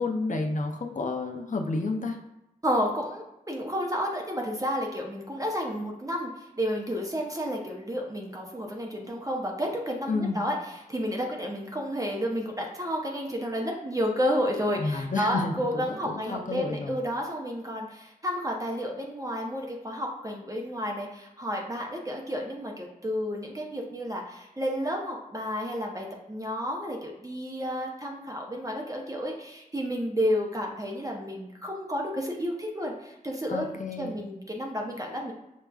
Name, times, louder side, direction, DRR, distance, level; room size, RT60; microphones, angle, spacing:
voice 1, 0.0-2.2 10.1-10.4 14.8-17.0 33.5-34.2, left 3 dB, 55° left, 2 dB, 0.5 m, -30 dB
voice 2, 2.6-10.6 10.9-35.3, equal, 20° right, 0 dB, 0.6 m, -31 dB
5.1 x 2.3 x 2.3 m, 0.90 s
wide cardioid pair, 45°, 15 cm